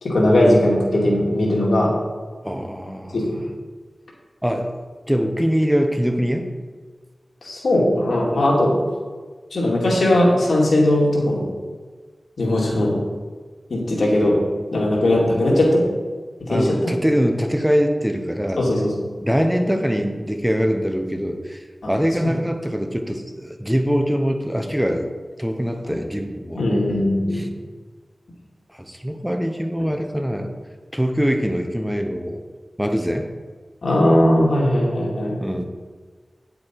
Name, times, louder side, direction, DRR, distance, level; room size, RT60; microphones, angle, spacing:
voice 1, 0.0-1.9 3.1-3.2 7.4-8.8 9.5-11.5 12.4-13.0 13.7-14.4 14.7-15.8 16.5-16.9 18.6-19.0 21.8-21.9 25.9-26.0 26.6-27.4 33.8-35.4, left 1 dB, 85° left, -3 dB, 2.5 m, -18 dB
voice 2, 2.4-3.2 4.4-4.7 5.1-6.5 16.5-18.6 19.2-25.1 25.4-26.6 27.3-27.5 28.7-30.5 30.9-32.4 32.8-33.3 35.4-35.6, equal, 5° right, 5 dB, 1.0 m, -23 dB
9.5 x 7.9 x 4.6 m, 1.4 s
wide cardioid pair, 75°, 0 cm